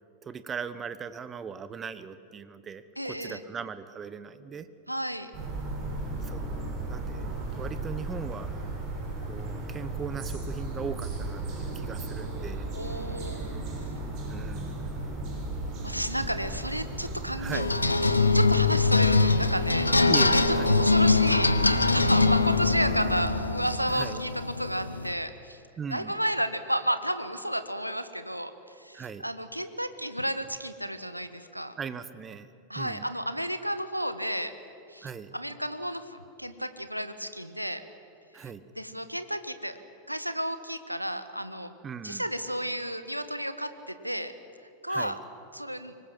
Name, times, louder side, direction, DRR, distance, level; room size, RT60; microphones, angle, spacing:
voice 1, 0.2-4.7 6.2-6.6 6.9-8.7 9.3-12.7 14.3-14.8 17.4-17.7 20.1-20.8 23.9-24.2 25.8-26.1 28.9-29.2 31.8-32.5 32.7-33.0 35.0-35.4 38.3-38.7 41.8-42.2 44.9-45.2, right 6 dB, 20° right, 13 dB, 1.2 m, -39 dB
voice 2, 3.0-3.4 4.9-5.3 12.7-13.6 15.8-17.6 18.3-19.9 20.3-25.6 25.9-31.7 32.7-34.5 34.9-37.8 38.3-38.5 38.8-39.8 40.1-41.7 42.0-44.3 44.8-45.2 45.5-45.9, equal, 90° right, 10 dB, 1.2 m, -32 dB
sound 1, 5.3-23.2, right 2 dB, 40° right, 7.4 m, -35 dB
sound 2, 17.5-25.1, left 3 dB, 85° left, 1.0 m, -23 dB
24.5 x 20.5 x 7.7 m, 2.7 s
figure-of-eight pair, 90°, 0 cm